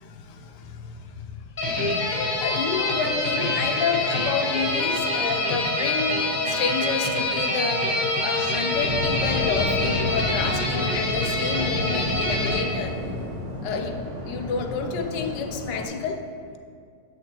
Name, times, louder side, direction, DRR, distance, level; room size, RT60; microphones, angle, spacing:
voice 1, 0.0-1.4 2.4-7.9 8.2-13.0 13.6-16.2 16.5-16.6, left 5 dB, 75° left, 5 dB, 1.2 m, -29 dB
sound 1, 1.6-12.6, left 2 dB, 40° left, 0.7 m, -25 dB
Waves surf, 8.7-15.9, left 1 dB, 55° right, 2.2 m, -31 dB
7.1 x 6.5 x 2.9 m, 2.3 s
omnidirectional pair, 2.0 m